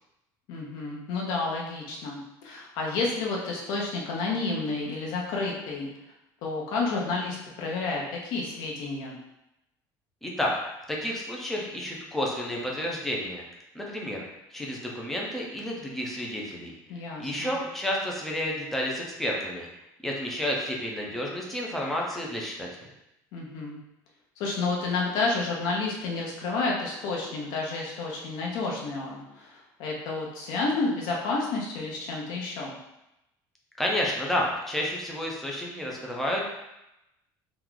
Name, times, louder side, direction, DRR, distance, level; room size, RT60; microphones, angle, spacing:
voice 1, 0.5-5.9 6.4-9.2 16.9-17.5 23.3-23.8 24.4-29.5 29.8-32.8, left 3 dB, 55° left, -2 dB, 0.8 m, -30 dB
voice 2, 10.2-10.5 10.9-13.4 13.7-14.2 14.5-16.7 17.2-19.7 20.0-22.7 33.8-36.4, left 1 dB, 5° left, -2 dB, 0.5 m, -30 dB
3.0 x 2.4 x 3.7 m, 0.89 s
cardioid pair, 180°, 8 cm